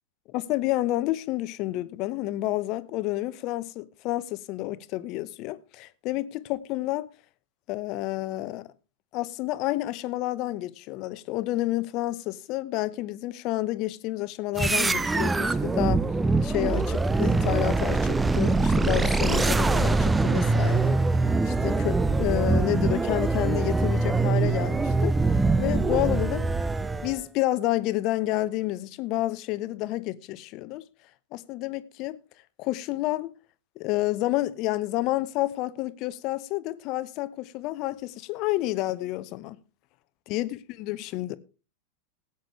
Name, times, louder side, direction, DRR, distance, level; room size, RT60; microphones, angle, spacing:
voice 1, 0.3-7.1 7.7-8.7 9.1-16.1 16.4-21.0 21.4-26.4 27.0-30.8 31.3-32.2 32.6-33.3 33.8-39.6 40.3-40.5 40.8-41.4, left 17 dB, 40° left, 0.9 m, -29 dB
sound 1, 14.6-27.2, right 3 dB, 10° right, 0.6 m, -23 dB
19.0 x 9.1 x 3.3 m
figure-of-eight pair, 90°, 0 cm